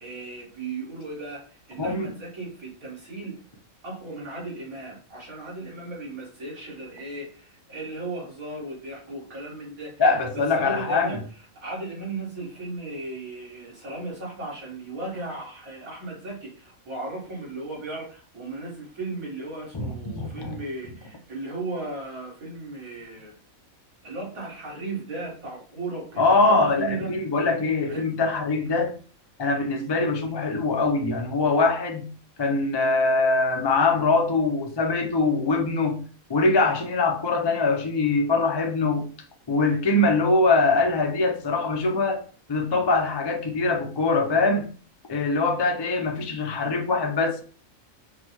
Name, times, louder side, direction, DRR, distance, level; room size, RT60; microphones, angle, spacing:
voice 1, 0.0-3.4 3.8-10.0 10.3-11.2 11.6-23.3 24.0-27.2 27.9-28.1, right 2 dB, 85° right, 2.4 m, -36 dB
voice 2, 1.8-2.1 10.0-11.2 19.7-20.6 26.2-29.0 29.4-32.1 32.4-36.0 36.3-39.1 39.5-42.2 42.5-44.7 45.1-47.4, left 3 dB, 40° left, 0.3 m, -23 dB
5.7 x 2.3 x 3.1 m
omnidirectional pair, 1.4 m